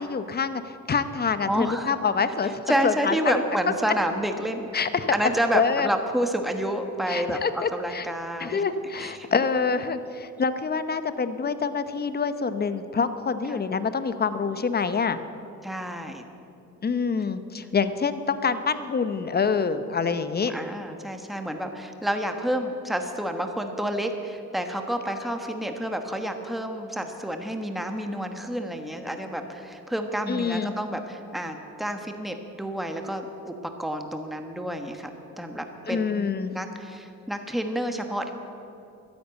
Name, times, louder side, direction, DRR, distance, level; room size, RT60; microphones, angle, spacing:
voice 1, 0.0-3.4 4.7-5.2 5.5-5.9 7.1-8.1 8.4-15.2 16.8-20.5 30.3-30.7 35.9-36.5, left 5 dB, 30° left, 11 dB, 0.9 m, -26 dB
voice 2, 1.5-1.9 2.4-4.7 5.1-8.6 9.0-9.3 13.5-13.6 15.6-16.2 20.5-33.5 33.8-38.3, right 1 dB, ahead, 5 dB, 1.3 m, -29 dB
13.0 x 10.5 x 8.2 m, 2.7 s
cardioid pair, 90°, 30 cm